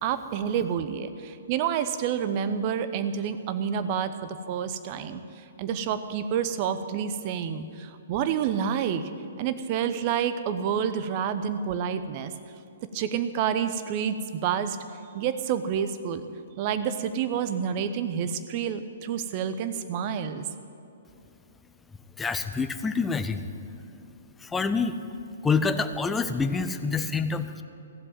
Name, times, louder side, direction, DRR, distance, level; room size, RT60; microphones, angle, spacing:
voice 1, 0.0-5.2 5.6-9.1 9.4-12.3 12.9-14.8 15.1-16.2 16.6-20.5, right 8 dB, 40° right, 11 dB, 0.8 m, -28 dB
voice 2, 22.2-23.5 24.4-25.0 25.4-27.6, left 4 dB, 10° left, 9 dB, 0.7 m, -27 dB
15.0 x 7.8 x 9.3 m, 2.7 s
figure-of-eight pair, 120°, 0 cm